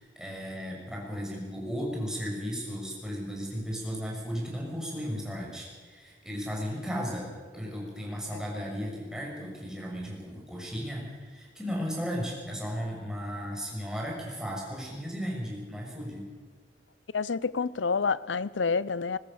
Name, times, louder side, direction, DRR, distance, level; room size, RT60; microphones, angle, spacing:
voice 1, 0.0-16.3, equal, 5° right, 6.3 m, -35 dB
voice 2, 17.1-19.2, left 5 dB, 90° left, 0.6 m, -28 dB
21.5 x 19.5 x 7.0 m
head